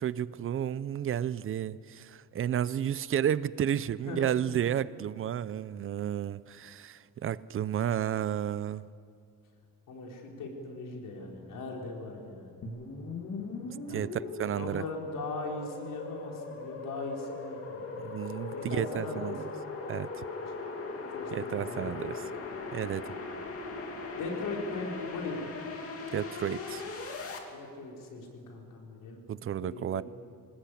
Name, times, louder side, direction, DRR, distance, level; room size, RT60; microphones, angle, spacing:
voice 1, 0.0-8.8 13.9-14.8 18.0-19.4 19.9-20.2 21.3-22.2 22.7-23.1 26.1-26.8 29.3-30.0, right 10 dB, 40° right, 18 dB, 0.5 m, -32 dB
voice 2, 4.0-4.6 9.9-12.5 13.9-14.1 14.5-17.8 18.5-19.4 20.4-20.5 21.1-21.9 24.2-25.5 27.5-29.2 29.6-30.0, left 3 dB, 75° left, 0 dB, 5.0 m, -39 dB
sound 1, 12.6-27.4, left 3 dB, 45° left, 2.7 m, -39 dB
26.0 x 19.5 x 8.6 m, 2.3 s
cardioid pair, 175°, 33 cm